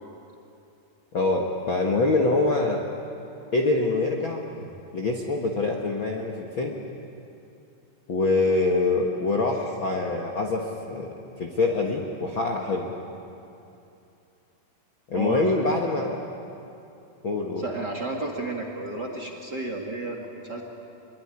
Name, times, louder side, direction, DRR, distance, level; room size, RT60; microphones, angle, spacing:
voice 1, 1.1-2.8 3.5-4.4 4.9-6.8 8.1-12.9 15.1-16.2 17.2-17.7, left 3 dB, 45° left, 1 dB, 1.7 m, -25 dB
voice 2, 15.1-15.5 17.6-20.6, right 2 dB, 35° right, 2 dB, 2.1 m, -32 dB
24.5 x 22.5 x 10.0 m, 2.7 s
omnidirectional pair, 4.3 m